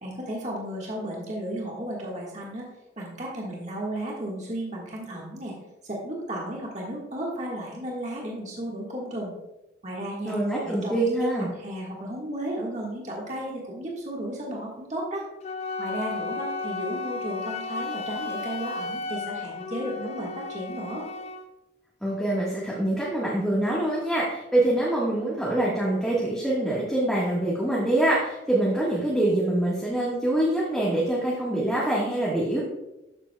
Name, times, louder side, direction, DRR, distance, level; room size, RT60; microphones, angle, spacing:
voice 1, 0.0-2.7 3.0-5.5 5.8-9.3 9.8-10.3 10.6-15.3 15.8-21.1, right 1 dB, 40° right, -3 dB, 1.6 m, -34 dB
voice 2, 10.2-11.5 22.0-32.6, right 1 dB, ahead, -7 dB, 1.4 m, -25 dB
Wind instrument woodwind instrument, 15.4-21.5, left 3 dB, 35° left, 0.4 m, -33 dB
12.5 x 7.3 x 2.3 m, 0.94 s
head